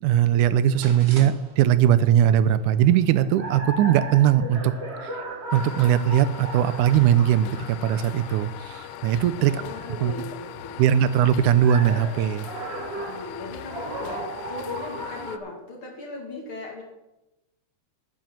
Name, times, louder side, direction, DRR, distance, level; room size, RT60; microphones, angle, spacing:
voice 1, 0.0-4.7 5.0-5.3 5.5-9.6 10.0-10.1 10.8-12.5, right 10 dB, 85° right, 15 dB, 2.1 m, -20 dB
sound 1, 0.7-15.4, right 1 dB, 30° right, 1.2 m, -37 dB
sound 2, 5.5-15.4, left 11 dB, 85° left, 2.1 m, -40 dB
voice 2, 9.4-10.9 12.9-16.8, left 3 dB, 45° left, 1 dB, 3.2 m, -38 dB
9.2 x 9.1 x 7.4 m, 0.95 s
omnidirectional pair, 3.5 m